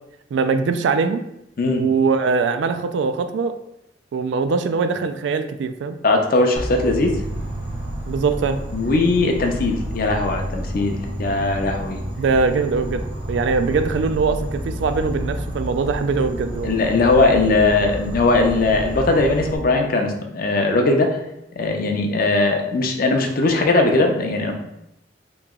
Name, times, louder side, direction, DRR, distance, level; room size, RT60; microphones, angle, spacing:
voice 1, 0.3-1.3 1.7-3.6 4.1-6.0 8.1-8.6 12.2-16.7, right 4 dB, 75° right, 9 dB, 0.3 m, -22 dB
voice 2, 6.0-7.2 8.7-12.0 16.6-21.2 21.6-24.5, left 2 dB, 50° left, 3 dB, 0.5 m, -19 dB
Insect, 6.6-19.6, equal, 30° right, 0.7 m, -30 dB
3.0 x 2.8 x 3.6 m, 0.83 s
head